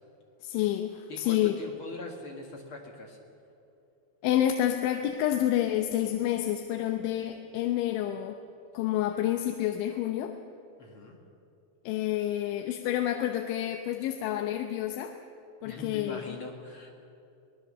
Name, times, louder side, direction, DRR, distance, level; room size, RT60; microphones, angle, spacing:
voice 1, 0.4-1.6 4.2-8.4 8.7-10.3 11.9-15.1 15.6-16.3, left 12 dB, 85° left, 5 dB, 3.3 m, -29 dB
voice 2, 1.1-3.2 10.8-11.2 15.6-16.9, left 3 dB, 55° left, 1 dB, 1.5 m, -42 dB
24.5 x 19.0 x 6.6 m, 2.8 s
omnidirectional pair, 5.2 m